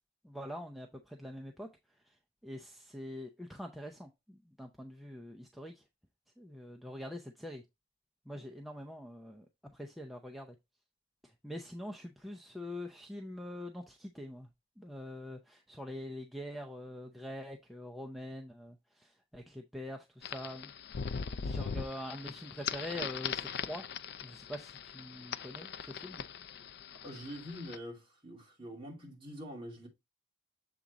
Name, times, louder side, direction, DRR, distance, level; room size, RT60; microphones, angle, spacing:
voice 1, 0.2-2.2 2.4-5.8 6.4-7.6 8.3-10.5 11.2-14.5 14.8-20.7 21.4-23.8 24.2-26.2, left 1 dB, ahead, 0.5 m, -44 dB
sound 1, 20.2-27.8, left 6 dB, 60° left, 0.4 m, -40 dB
voice 2, 27.0-29.9, equal, 30° right, 2.5 m, -45 dB
7.4 x 3.6 x 4.0 m
head